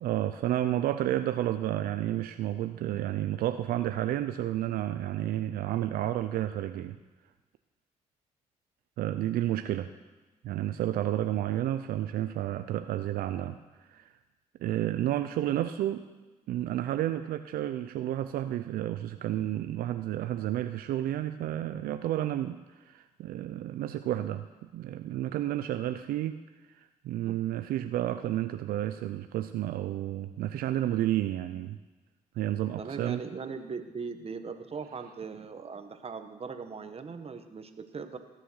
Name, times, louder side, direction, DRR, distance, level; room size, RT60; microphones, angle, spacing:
voice 1, 0.0-7.0 9.0-9.9 10.4-14.1 14.6-16.0 16.5-26.4 26.7-31.8 32.4-33.2, right 13 dB, 80° right, 10 dB, 0.5 m, -31 dB
voice 2, 32.8-38.2, right 5 dB, 40° right, 8 dB, 1.3 m, -39 dB
17.0 x 6.6 x 6.3 m, 1.2 s
supercardioid pair, 65°, 15 cm